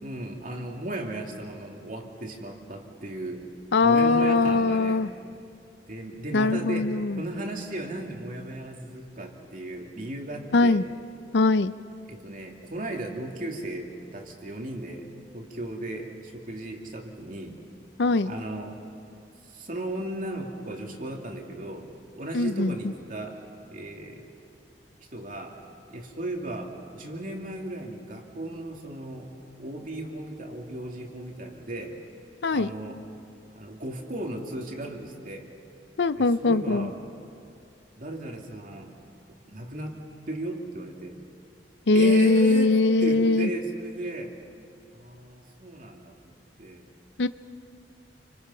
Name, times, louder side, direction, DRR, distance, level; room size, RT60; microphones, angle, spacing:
voice 1, 0.0-3.4 3.8-5.1 5.9-10.8 12.1-15.1 15.3-17.6 18.2-18.8 19.4-21.9 22.2-23.4 23.7-24.3 25.0-25.6 25.9-29.3 29.6-32.0 32.5-33.0 33.5-35.5 36.2-37.0 38.0-38.9 39.5-40.0 40.3-41.2 41.9-44.3 44.9-46.9, right 1 dB, 50° right, 1 dB, 2.7 m, -36 dB
voice 2, 3.7-5.1 6.3-7.2 10.5-10.8 11.3-11.7 18.0-18.3 22.3-22.8 32.4-32.7 36.0-36.9 41.9-43.5 47.2-47.3, left 3 dB, 75° left, 14 dB, 0.6 m, -21 dB
28.5 x 25.5 x 5.7 m, 2.5 s
head